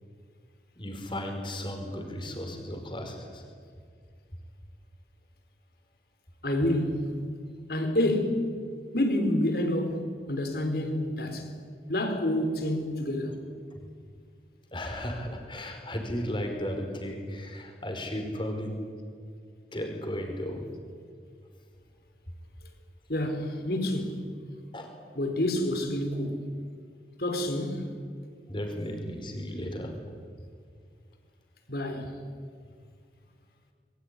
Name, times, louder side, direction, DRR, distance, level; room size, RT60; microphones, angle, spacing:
voice 1, 0.8-3.4 14.7-18.7 19.7-20.6 24.7-24.9 28.5-29.9, equal, 25° left, 5.1 m, -35 dB
voice 2, 6.4-7.1 7.7-8.5 8.9-11.5 11.9-13.4 23.1-24.2 25.1-26.4 27.2-27.9 31.7-32.2, left 1 dB, 55° left, 4.3 m, -28 dB
25.5 x 23.0 x 10.0 m
head